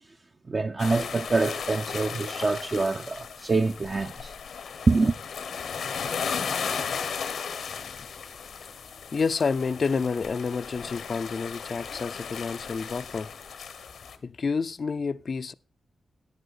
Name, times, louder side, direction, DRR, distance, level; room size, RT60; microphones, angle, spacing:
voice 1, 0.5-4.3 4.9-5.1, right 3 dB, 35° right, 0.5 m, -25 dB
sound 1, 0.8-14.2, left 6 dB, 85° left, 1.2 m, -35 dB
voice 2, 7.6-8.7 9.1-13.3 14.2-15.5, left 5 dB, 50° left, 0.4 m, -30 dB
10.0 x 9.4 x 4.3 m
wide cardioid pair, 105°, 0 cm